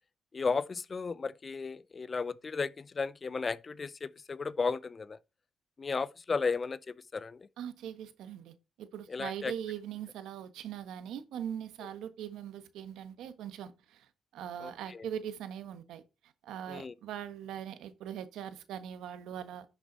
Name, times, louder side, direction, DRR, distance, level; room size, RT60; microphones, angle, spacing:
voice 1, 0.3-5.2 5.8-7.4 9.1-9.5 14.6-15.0 16.7-16.9, left 4 dB, 35° left, 0.5 m, -34 dB
voice 2, 7.6-14.1 14.3-16.0 16.4-19.6, right 9 dB, 85° right, 1.3 m, -41 dB
11.0 x 6.1 x 4.1 m
cardioid pair, 90°, 0 cm